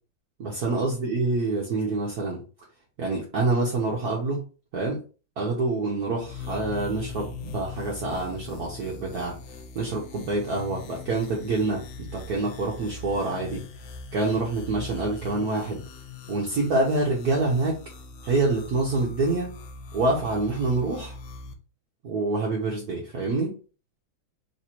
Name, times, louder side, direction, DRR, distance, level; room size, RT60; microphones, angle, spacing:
voice 1, 0.4-2.4 3.0-4.4 4.7-5.0 5.4-9.4 9.7-11.8 12.1-13.6 14.1-15.8 16.3-17.8 18.2-19.5 19.9-21.2 22.0-23.5, right 2 dB, 55° right, -2 dB, 1.2 m, -26 dB
sound 1, 6.2-21.5, left 4 dB, 70° left, 1.2 m, -41 dB
3.3 x 3.3 x 4.3 m, 0.35 s
omnidirectional pair, 2.3 m